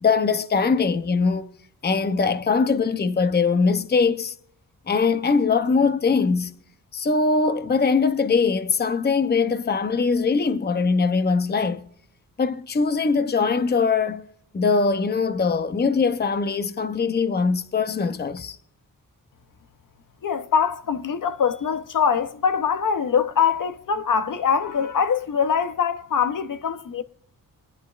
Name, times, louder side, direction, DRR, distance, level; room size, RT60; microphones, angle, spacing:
voice 1, 0.0-1.5 1.8-4.3 4.9-6.5 6.9-11.8 12.4-14.3 14.5-18.6, left 4 dB, 30° left, 0.7 m, -21 dB
voice 2, 20.2-27.0, left 7 dB, 60° left, 0.9 m, -23 dB
22.0 x 10.5 x 2.5 m
cardioid pair, 80°, 35 cm